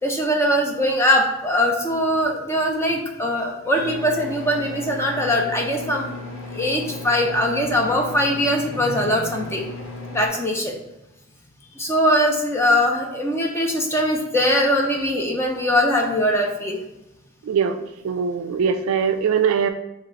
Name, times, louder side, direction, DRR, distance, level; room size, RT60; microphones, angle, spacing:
voice 1, 0.0-6.1 6.5-9.6 10.1-10.8 11.8-16.8, equal, 10° left, 1 dB, 0.5 m, -21 dB
sound 1, 3.7-10.3, left 2 dB, 55° left, 0.9 m, -35 dB
voice 2, 17.5-19.7, right 6 dB, 70° right, 7 dB, 0.3 m, -22 dB
3.8 x 3.1 x 4.3 m, 0.92 s
head